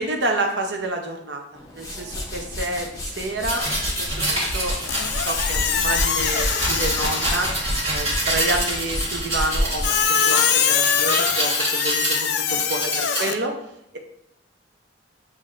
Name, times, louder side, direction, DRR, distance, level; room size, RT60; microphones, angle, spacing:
voice 1, 0.0-1.4 1.7-7.5 7.9-13.5, right 2 dB, 65° right, 3 dB, 0.7 m, -29 dB
sound 1, 1.5-10.9, left 1 dB, 20° left, 0.6 m, -30 dB
sound 2, 3.5-13.2, right 1 dB, 35° right, 1.5 m, -27 dB
Squeak, 4.9-7.6 9.8-13.3, left 8 dB, 60° left, 0.3 m, -23 dB
7.3 x 2.7 x 2.5 m, 0.78 s
head